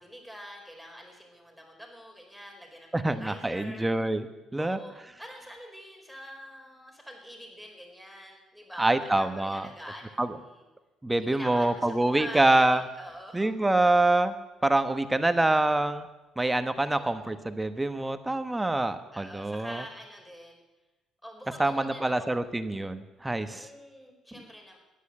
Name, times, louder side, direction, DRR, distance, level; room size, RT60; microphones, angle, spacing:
voice 1, 0.0-3.8 4.6-4.9 5.2-10.6 11.2-13.6 16.8-17.3 19.1-20.6 21.2-22.3 23.5-24.8, equal, 5° left, 1 dB, 4.6 m, -45 dB
voice 2, 2.9-4.3 4.5-4.8 8.8-9.7 10.2-10.3 11.0-12.8 13.3-14.3 14.6-16.1 16.4-19.8 21.6-23.7, right 2 dB, 15° right, 10 dB, 1.1 m, -25 dB
13.0 x 10.5 x 8.8 m, 1.1 s
supercardioid pair, 70°, 0 cm